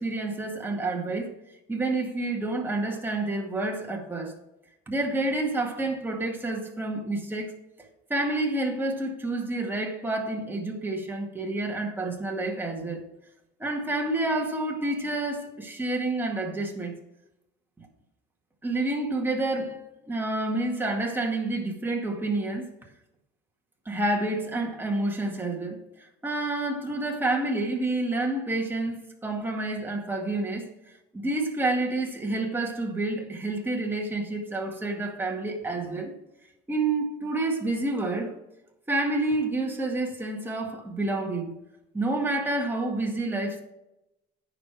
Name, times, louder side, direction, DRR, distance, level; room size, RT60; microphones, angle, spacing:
voice 1, 0.0-1.3 1.7-4.4 4.9-7.5 8.1-13.0 13.6-17.0 17.8-17.9 18.6-19.8 20.1-22.7 23.9-30.7 31.1-36.2 36.7-38.4 38.9-41.5 41.9-43.6, right 2 dB, 10° right, 1.9 m, -29 dB
9.6 x 5.1 x 6.0 m
cardioid pair, 110°, 20 cm